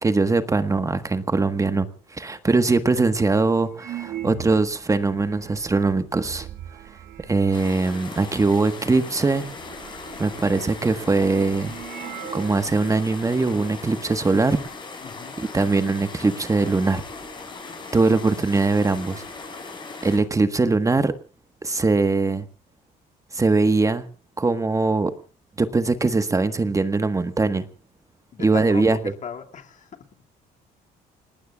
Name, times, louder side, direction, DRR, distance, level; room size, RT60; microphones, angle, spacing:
voice 1, 0.0-6.5 7.3-9.5 10.2-11.7 12.3-14.6 15.4-17.0 17.9-19.2 20.0-21.1 21.6-22.4 23.3-24.1 24.4-25.1 25.6-27.7 28.4-29.0, right 3 dB, 20° right, 1.5 m, -21 dB
sound 1, 2.3-2.4 3.0-3.1 3.7-8.0 8.8-8.9 9.1-12.6 12.9-13.0 13.7-14.0 14.3-14.8 16.1-16.2 16.6-18.1 18.4-18.5 18.8-19.5, right 10 dB, 75° right, 1.9 m, -41 dB
sound 2, 7.5-20.2, left 3 dB, 25° left, 6.6 m, -38 dB
voice 2, 15.0-15.4 28.3-29.9, left 7 dB, 45° left, 2.6 m, -37 dB
29.5 x 19.0 x 2.5 m
cardioid pair, 110°, 17 cm